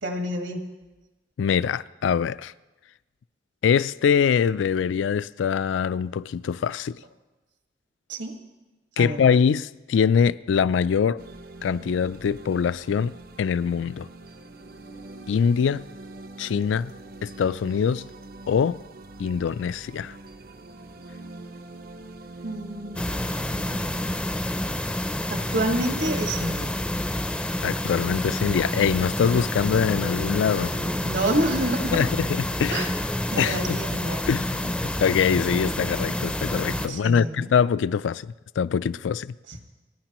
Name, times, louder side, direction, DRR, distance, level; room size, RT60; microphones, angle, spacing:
voice 1, 0.0-0.6 8.1-8.3 9.0-9.2 22.4-23.0 25.3-26.8 30.6-32.1 32.7-32.9 33.3-34.2 36.8-37.5 39.5-39.6, right 1 dB, 75° right, 1.7 m, -28 dB
voice 2, 1.4-2.5 3.6-7.0 9.0-11.2 11.6-14.1 15.3-15.8 16.4-16.9 17.2-18.1 18.5-18.8 19.2-20.2 27.6-30.8 31.9-32.9 33.4-33.8 34.3-39.3, left 7 dB, 85° left, 0.3 m, -23 dB
sound 1, 11.2-24.2, right 2 dB, 50° right, 0.6 m, -43 dB
sound 2, 23.0-36.9, left 1 dB, 5° left, 0.4 m, -28 dB
29.5 x 10.0 x 3.0 m
head